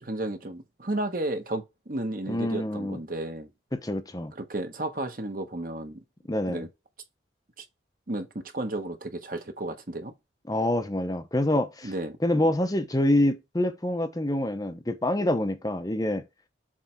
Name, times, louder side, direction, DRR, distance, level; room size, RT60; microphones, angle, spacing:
voice 1, 0.0-3.5 4.3-6.0 6.5-6.7 7.6-7.7 8.1-10.1 11.8-12.2, right 1 dB, 45° right, 1.1 m, -33 dB
voice 2, 2.3-3.0 3.7-4.3 6.3-6.6 10.5-11.9 12.2-16.2, left 1 dB, 20° left, 0.7 m, -26 dB
7.5 x 3.3 x 4.5 m
head